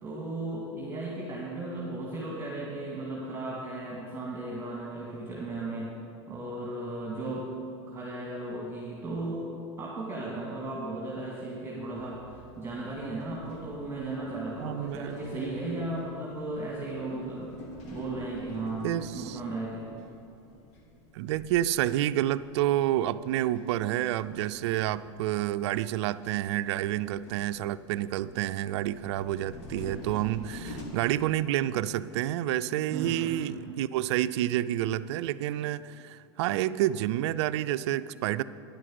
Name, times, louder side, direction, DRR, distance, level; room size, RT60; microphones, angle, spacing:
voice 1, 0.0-6.0 6.3-7.5 7.9-9.5 9.8-17.6 17.9-19.9 32.9-33.4, right 2 dB, 15° right, -5 dB, 2.2 m, -36 dB
sound 1, 12.0-30.8, left 1 dB, 50° left, 2.0 m, -48 dB
voice 2, 14.6-15.3 18.8-19.4 21.1-38.4, right 13 dB, 70° right, 15 dB, 0.4 m, -29 dB
10.0 x 6.3 x 7.6 m, 2.7 s
hypercardioid pair, 115°, 15 cm